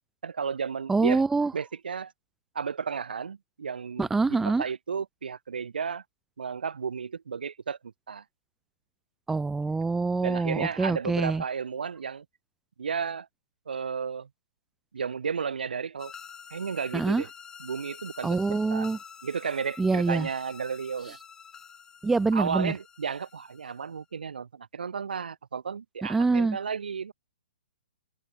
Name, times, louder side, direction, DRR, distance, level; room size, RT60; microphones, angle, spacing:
voice 1, 0.2-1.2 1.5-2.1 2.5-6.0 6.4-7.8 8.1-8.2 10.2-12.2 12.8-13.3 13.7-14.3 14.9-16.1 16.5-17.3 17.6-18.9 19.2-21.2 22.3-27.1, right 6 dB, 80° right, 4.9 m, -33 dB
voice 2, 0.9-1.5 4.0-4.6 9.3-11.4 16.9-17.2 18.2-19.0 19.8-20.3 22.0-22.7 26.1-26.6, right 3 dB, 5° right, 0.4 m, -25 dB
sound 1, 16.0-24.0, left 7 dB, 10° left, 4.9 m, -48 dB
hypercardioid pair, 150°, 5 cm